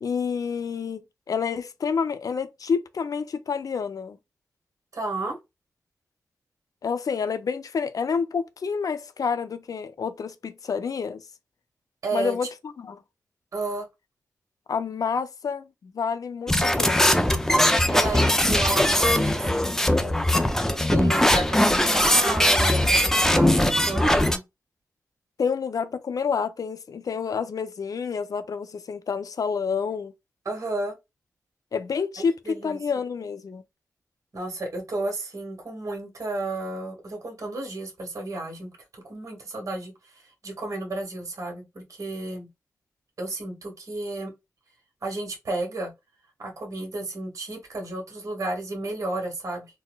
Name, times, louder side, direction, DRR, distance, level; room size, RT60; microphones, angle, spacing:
voice 1, 0.0-4.2 6.8-11.2 12.1-13.0 14.7-17.2 25.4-30.1 31.7-33.6, left 6 dB, 65° left, 0.4 m, -29 dB
voice 2, 4.9-5.4 12.0-12.4 13.5-13.9 17.9-20.2 20.9-24.4 30.4-30.9 32.2-32.8 34.3-39.9 40.4-42.5 43.2-44.3 45.0-45.9 46.4-49.7, right 2 dB, 55° right, 1.4 m, -32 dB
sound 1, 16.5-24.4, left 1 dB, 5° left, 0.4 m, -20 dB
4.0 x 2.1 x 2.2 m
cardioid pair, 50°, 7 cm